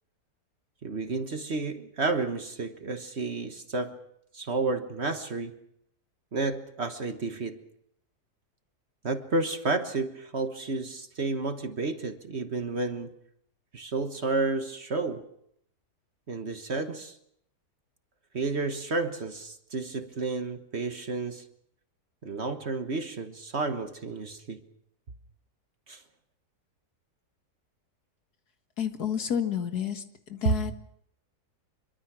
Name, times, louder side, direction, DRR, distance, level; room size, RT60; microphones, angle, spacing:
voice 1, 0.8-4.0 4.3-5.5 6.3-7.6 9.0-13.1 13.7-15.2 16.3-17.2 18.3-21.4 22.2-24.6 25.9-26.0 30.4-30.6, right 3 dB, 40° right, 8 dB, 1.5 m, -31 dB
voice 2, 28.8-30.0 30.3-30.7, left 8 dB, 65° left, 7 dB, 2.2 m, -29 dB
25.5 x 23.5 x 6.1 m, 0.73 s
omnidirectional pair, 1.8 m